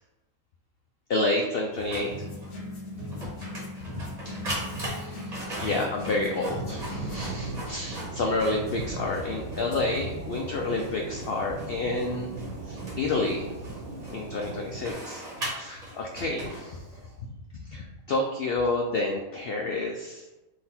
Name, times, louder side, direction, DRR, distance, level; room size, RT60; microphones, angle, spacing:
voice 1, 1.1-2.3 4.3-4.4 5.0-12.3 12.7-13.5 14.1-15.2 15.5-16.8 17.7-20.2, left 2 dB, 75° left, 0 dB, 0.5 m, -29 dB
Printer, 1.7-17.1, equal, 30° right, 1.1 m, -40 dB
sound 1, 2.1-7.3, left 2 dB, 55° left, 0.8 m, -38 dB
sound 2, 4.3-14.9, right 2 dB, 85° right, 1.1 m, -39 dB
3.9 x 2.8 x 4.2 m, 1.0 s
omnidirectional pair, 1.5 m